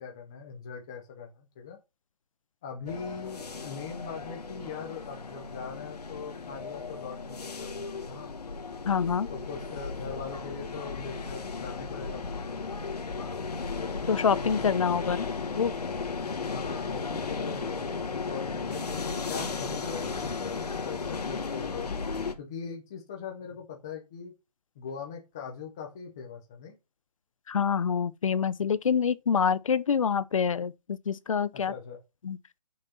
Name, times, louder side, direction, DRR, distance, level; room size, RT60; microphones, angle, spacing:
voice 1, 0.0-1.8 2.6-8.3 9.3-12.5 15.0-15.2 16.3-21.9 22.4-24.3 24.8-26.8 31.5-32.0, left 6 dB, 5° left, 0.4 m, -41 dB
sound 1, 2.9-22.3, left 4 dB, 75° left, 1.7 m, -35 dB
voice 2, 8.9-9.3 14.1-15.3 15.5-15.7 27.5-31.7 32.2-32.4, left 6 dB, 55° left, 0.7 m, -26 dB
6.5 x 5.7 x 5.5 m
hypercardioid pair, 170°, 20 cm